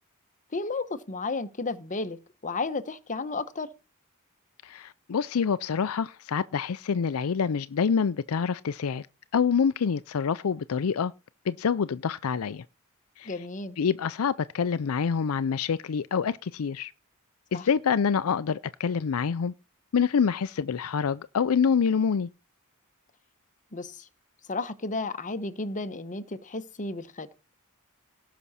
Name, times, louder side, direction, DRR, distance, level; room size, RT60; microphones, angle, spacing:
voice 1, 0.5-3.7 13.3-13.8 17.5-17.6 23.7-24.1 24.5-27.3, left 3 dB, 35° left, 1.0 m, -33 dB
voice 2, 4.6-9.1 9.3-11.1 11.5-12.6 13.2-13.4 13.8-16.9 17.5-19.5 19.9-22.3, left 6 dB, 75° left, 0.5 m, -26 dB
17.5 x 6.0 x 4.2 m
head